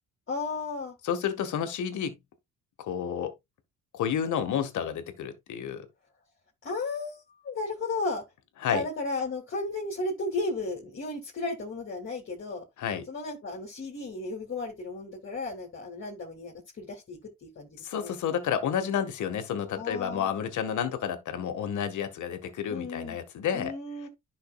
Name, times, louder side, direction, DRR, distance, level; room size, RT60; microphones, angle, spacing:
voice 1, 0.3-0.9 6.6-8.2 8.7-12.6 13.1-18.1 19.7-20.3 22.7-23.2 23.5-24.1, left 3 dB, 40° left, 2.7 m, -34 dB
voice 2, 1.0-2.2 2.8-3.3 3.9-5.9 8.6-8.9 12.8-13.1 17.8-23.7, left 8 dB, 75° left, 1.9 m, -30 dB
11.0 x 5.8 x 2.4 m
cardioid pair, 90°, 30 cm